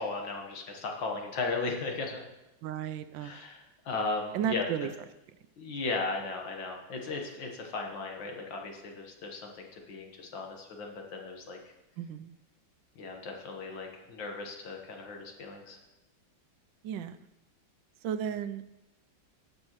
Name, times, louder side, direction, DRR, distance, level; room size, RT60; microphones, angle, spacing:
voice 1, 0.0-2.2 3.2-4.7 5.6-11.6 13.0-15.8, left 3 dB, 75° left, 2 dB, 2.0 m, -36 dB
voice 2, 2.6-3.4 4.3-4.9 12.0-12.3 16.8-17.2 18.0-18.6, right 8 dB, 80° right, 11 dB, 1.3 m, -33 dB
17.5 x 6.6 x 3.0 m, 0.99 s
omnidirectional pair, 2.1 m